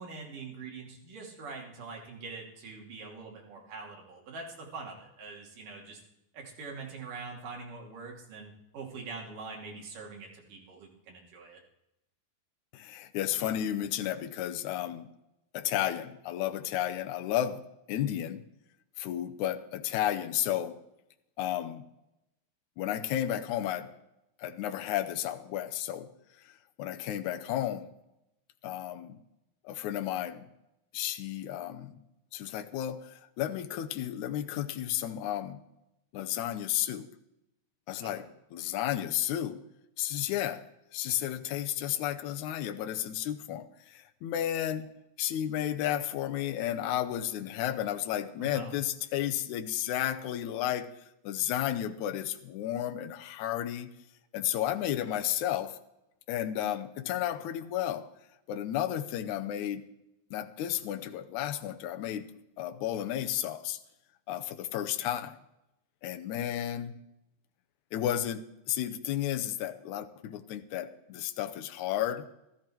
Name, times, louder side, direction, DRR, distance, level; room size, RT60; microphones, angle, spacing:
voice 1, 0.0-6.0 6.3-11.6 38.0-38.2 48.4-48.7, right 4 dB, 65° right, -1 dB, 4.1 m, -44 dB
voice 2, 12.7-15.1 15.5-18.4 19.0-20.8 21.4-21.9 22.8-23.9 24.4-26.1 26.4-26.5 26.8-27.9 28.6-29.2 29.6-30.5 30.9-32.0 32.3-35.6 36.1-37.1 37.9-39.6 40.0-40.7 40.9-44.9 45.2-50.9 51.2-53.9 54.3-55.8 56.3-58.1 58.5-59.9 60.3-62.3 62.6-63.8 64.3-65.4 66.0-67.0 67.9-72.3, left 11 dB, 75° left, 8 dB, 1.8 m, -32 dB
15.0 x 13.5 x 4.5 m, 0.87 s
omnidirectional pair, 4.2 m